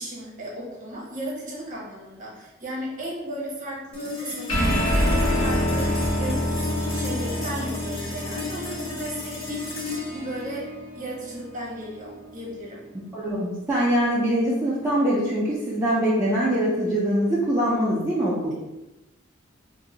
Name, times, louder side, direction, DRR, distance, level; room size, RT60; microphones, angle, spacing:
voice 1, 0.0-6.6 6.9-10.6 10.9-12.8, right 1 dB, 40° right, -4 dB, 0.9 m, -35 dB
sound 1, 3.9-14.5, left 3 dB, 30° left, 0.7 m, -36 dB
sound 2, 4.5-11.3, equal, 85° left, 0.9 m, -26 dB
voice 2, 13.1-18.5, equal, 15° right, -8 dB, 0.4 m, -23 dB
2.6 x 2.0 x 3.7 m, 1.0 s
head